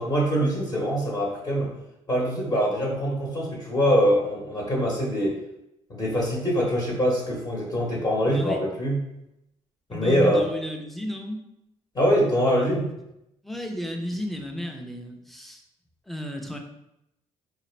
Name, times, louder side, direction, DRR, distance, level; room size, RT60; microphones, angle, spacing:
voice 1, 0.0-1.7 2.1-5.4 5.9-9.0 9.9-10.4 11.9-12.9, equal, 30° left, -4 dB, 1.0 m, -23 dB
voice 2, 8.2-8.6 9.9-11.4 12.5-12.9 13.4-15.6 16.1-16.6, equal, ahead, 3 dB, 0.6 m, -33 dB
3.9 x 2.5 x 3.2 m, 0.84 s
cardioid pair, 85°, 13 cm